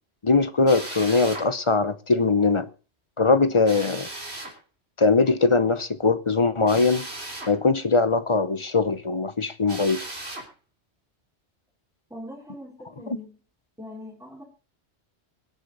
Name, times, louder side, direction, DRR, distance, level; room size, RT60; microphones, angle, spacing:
voice 1, 0.2-2.7 3.2-4.1 5.0-7.1 7.5-10.0, left 3 dB, 30° left, 0.8 m, -21 dB
Drill, 0.7-1.5 3.6-4.6 6.7-7.5 9.7-10.5, right 2 dB, 70° right, 3.7 m, -36 dB
voice 2, 12.1-13.4 13.8-14.4, left 1 dB, 5° right, 3.7 m, -41 dB
22.5 x 8.2 x 4.0 m
omnidirectional pair, 1.1 m